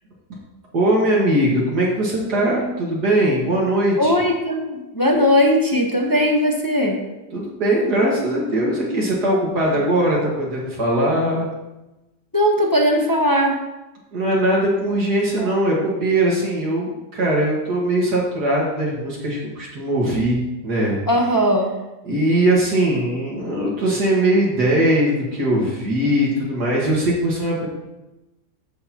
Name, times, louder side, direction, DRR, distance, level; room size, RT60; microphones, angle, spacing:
voice 1, 0.7-4.1 7.3-11.5 14.1-21.0 22.0-27.7, right 1 dB, 70° right, -4 dB, 2.3 m, -20 dB
voice 2, 4.0-7.0 12.3-13.6 15.4-15.5 21.1-21.7, equal, 20° left, 0 dB, 0.7 m, -18 dB
14.0 x 6.7 x 2.9 m, 1.0 s
omnidirectional pair, 1.8 m